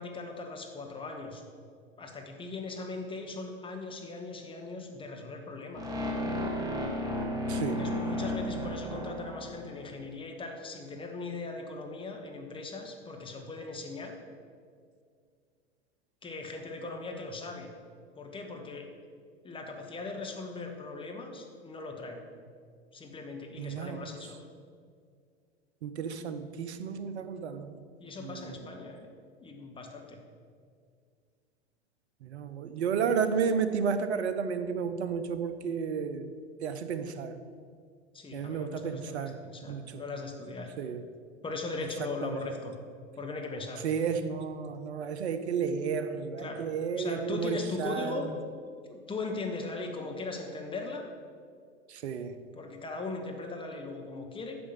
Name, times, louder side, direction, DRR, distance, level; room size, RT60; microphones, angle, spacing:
voice 1, 0.0-1.4 2.0-5.8 7.6-14.2 16.2-17.7 18.1-18.9 19.4-22.2 22.9-24.4 28.0-29.1 29.4-30.2 38.1-40.7 41.4-42.8 43.2-43.8 46.4-46.7 46.9-48.3 48.9-51.0 52.5-54.6, left 3 dB, 15° left, 2 dB, 1.6 m, -39 dB
sound 1, 5.7-9.8, left 1 dB, 10° right, 2.3 m, -33 dB
voice 2, 7.5-7.8 23.6-24.0 25.8-27.8 28.2-28.7 32.2-36.3 36.6-37.4 38.3-40.0 40.8-41.0 42.2-42.4 43.8-48.3 51.9-52.4, right 6 dB, 70° right, 10 dB, 0.9 m, -32 dB
9.9 x 6.2 x 8.0 m, 2.1 s
hypercardioid pair, 100°, 34 cm